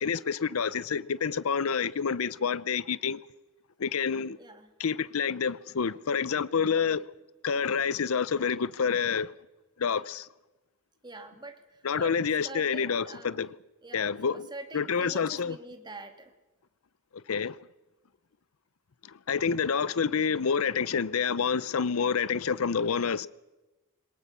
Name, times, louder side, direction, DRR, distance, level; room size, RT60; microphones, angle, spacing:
voice 1, 0.0-3.2 3.8-4.4 4.8-7.0 7.4-9.3 9.8-10.3 11.8-13.5 13.9-14.4 14.7-15.6 17.3-17.6 19.3-23.3, left 6 dB, 80° left, 0.6 m, -28 dB
voice 2, 4.4-4.7 11.0-12.2 12.4-13.5 13.8-16.3, right 2 dB, 20° right, 2.3 m, -45 dB
22.5 x 19.5 x 6.8 m
head